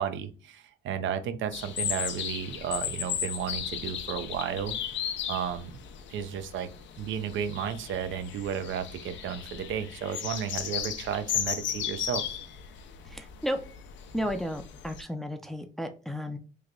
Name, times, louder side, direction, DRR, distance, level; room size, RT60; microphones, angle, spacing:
voice 1, 0.0-4.8 5.3-5.8 6.1-6.7 7.0-12.3, right 8 dB, 75° right, 10 dB, 0.5 m, -33 dB
sound 1, 1.5-15.0, left 9 dB, 70° left, 0.5 m, -36 dB
voice 2, 13.1-13.6 14.1-16.4, equal, ahead, 7 dB, 0.5 m, -33 dB
3.1 x 2.2 x 3.7 m, 0.35 s
cardioid pair, 90°, 20 cm